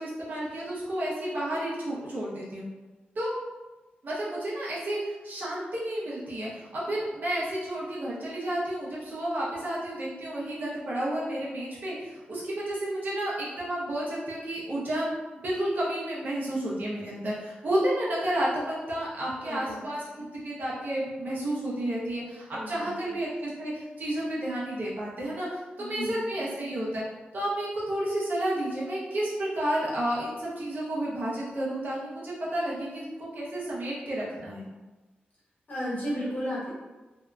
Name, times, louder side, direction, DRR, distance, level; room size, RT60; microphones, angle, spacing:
voice 1, 0.0-2.7 3.1-3.3 4.0-27.0 27.3-34.7, right 1 dB, 60° right, -7 dB, 0.8 m, -31 dB
voice 2, 19.4-19.9 22.5-22.9 25.8-26.1 35.7-36.7, equal, 50° left, -9 dB, 1.2 m, -33 dB
2.8 x 2.2 x 2.3 m, 1.2 s
wide cardioid pair, 115°, 4 cm